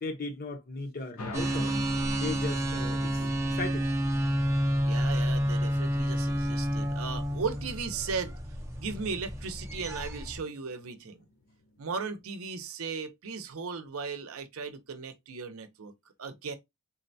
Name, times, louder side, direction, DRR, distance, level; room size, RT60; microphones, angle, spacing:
voice 1, 0.0-1.7 2.2-3.2 3.6-3.9, left 3 dB, 40° left, 0.7 m, -36 dB
sound 1, 1.2-12.3, left 1 dB, 80° left, 0.7 m, -47 dB
sound 2, 1.3-10.4, equal, 15° right, 0.4 m, -30 dB
voice 2, 4.8-8.4 8.8-11.2 11.8-15.9 16.2-16.5, right 5 dB, 75° right, 0.6 m, -37 dB
3.8 x 2.1 x 2.6 m
head